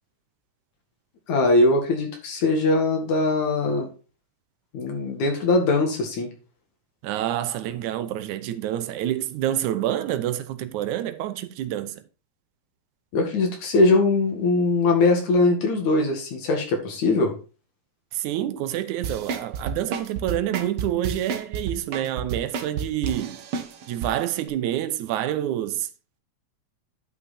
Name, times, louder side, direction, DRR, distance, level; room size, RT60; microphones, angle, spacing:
voice 1, 1.3-3.9 4.7-6.3 13.1-17.3, left 2 dB, 80° left, 3.3 m, -21 dB
voice 2, 7.0-12.0 18.1-23.4 23.9-25.9, right 12 dB, 85° right, 2.2 m, -27 dB
sound 1, 19.0-24.1 24.5-24.6, right 6 dB, 60° right, 1.7 m, -30 dB
10.5 x 5.7 x 4.2 m
omnidirectional pair, 3.3 m